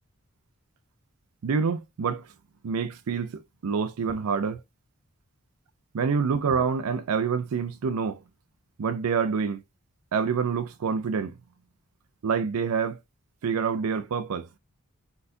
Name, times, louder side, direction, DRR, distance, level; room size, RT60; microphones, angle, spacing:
voice 1, 1.4-2.3 2.6-4.6 5.9-8.2 8.8-9.6 10.1-11.4 12.2-13.0 13.4-14.5, right 6 dB, 80° right, 0.4 m, -27 dB
4.1 x 4.0 x 2.5 m
head